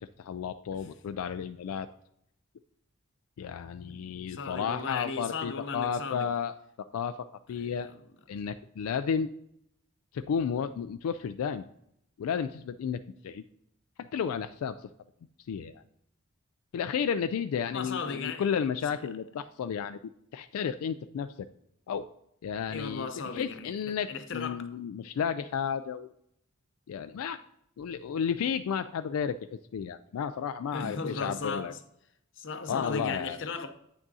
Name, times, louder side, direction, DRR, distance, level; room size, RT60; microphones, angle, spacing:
voice 1, 0.0-1.9 3.4-6.5 6.9-7.9 8.3-9.3 10.1-11.6 12.2-13.4 14.0-14.8 15.5-15.8 16.7-20.0 20.3-21.3 21.9-22.1 22.4-26.1 26.9-27.4 27.8-31.7 32.7-33.4, left 7 dB, 90° left, 0.3 m, -32 dB
voice 2, 3.8-6.3 7.5-8.0 17.7-18.5 22.7-24.7 30.7-31.8 32.4-33.7, left 4 dB, 60° left, 0.7 m, -37 dB
8.8 x 6.1 x 2.7 m
head